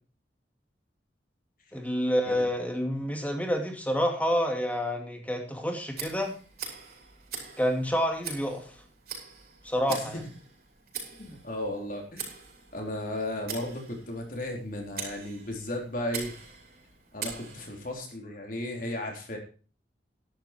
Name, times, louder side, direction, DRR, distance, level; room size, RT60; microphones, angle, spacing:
voice 1, 1.7-6.3 7.6-8.6 9.6-10.2, equal, 10° left, 3 dB, 2.4 m, -28 dB
Tick, 5.9-18.0, right 6 dB, 55° right, 5.3 m, -43 dB
voice 2, 11.2-12.4 12.7-16.3 17.1-19.4, left 1 dB, 50° left, 2 dB, 3.7 m, -35 dB
11.5 x 11.5 x 4.5 m, 0.36 s
head